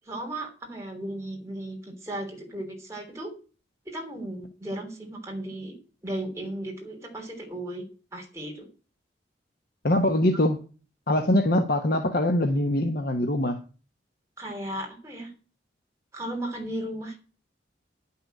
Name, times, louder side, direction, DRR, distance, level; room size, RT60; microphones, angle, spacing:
voice 1, 0.1-3.3 3.8-5.7 6.0-7.8 8.1-8.7 14.4-15.3 16.1-17.2, right 1 dB, 15° right, 1 dB, 3.1 m, -35 dB
voice 2, 9.8-10.6 11.1-13.6, left 1 dB, 55° left, 5 dB, 1.1 m, -23 dB
10.5 x 5.8 x 7.6 m, 0.36 s
head